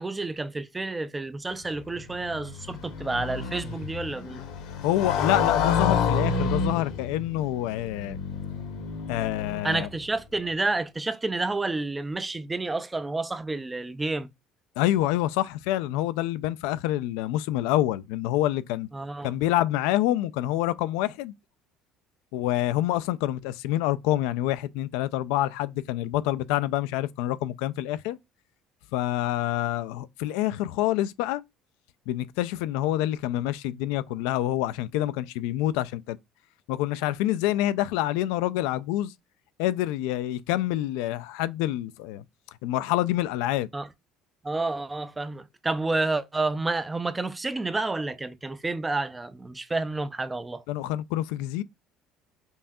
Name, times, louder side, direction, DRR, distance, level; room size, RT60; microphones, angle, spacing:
voice 1, 0.0-4.4 9.6-14.3 18.9-19.3 43.7-43.9 44.4-50.6, right 3 dB, 10° right, 0.4 m, -30 dB
Motorcycle, 1.8-9.9, left 6 dB, 75° left, 1.1 m, -29 dB
voice 2, 4.8-8.2 9.1-9.9 14.8-18.9 19.2-21.3 22.3-28.2 28.9-31.4 32.1-36.2 36.7-39.1 39.6-42.2 42.6-43.7 50.7-51.6, left 14 dB, 90° left, 0.3 m, -27 dB
5.4 x 2.7 x 2.2 m
cardioid pair, 155°, 0 cm